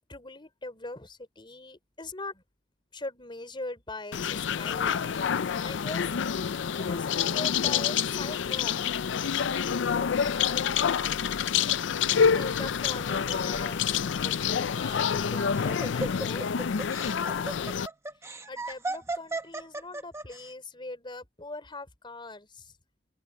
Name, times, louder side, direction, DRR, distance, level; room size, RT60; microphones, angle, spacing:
voice 1, 0.1-2.4 2.9-5.3 5.6-6.4 6.8-8.7 10.4-10.6 12.3-13.8 14.1-16.5 17.0-17.7 18.2-22.7, left 2 dB, 25° left, 4.1 m, -41 dB
sound 1, 4.1-17.9, left 7 dB, 80° left, 0.5 m, -27 dB
Laughter, 14.9-20.4, right 2 dB, 15° right, 1.2 m, -35 dB
open air
head